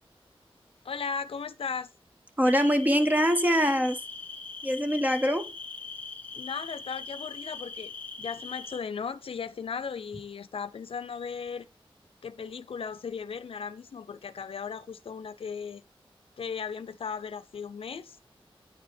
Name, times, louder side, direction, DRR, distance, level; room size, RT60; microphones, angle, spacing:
voice 1, 0.8-1.9 6.4-7.9 8.2-11.7 12.2-15.8 16.4-18.2, left 6 dB, 75° left, 0.5 m, -36 dB
sound 1, 2.4-8.8, left 4 dB, 15° left, 1.1 m, -41 dB
voice 2, 2.4-4.0 4.6-5.5, equal, 15° right, 0.9 m, -24 dB
9.1 x 4.7 x 3.3 m
wide cardioid pair, 95°, 10 cm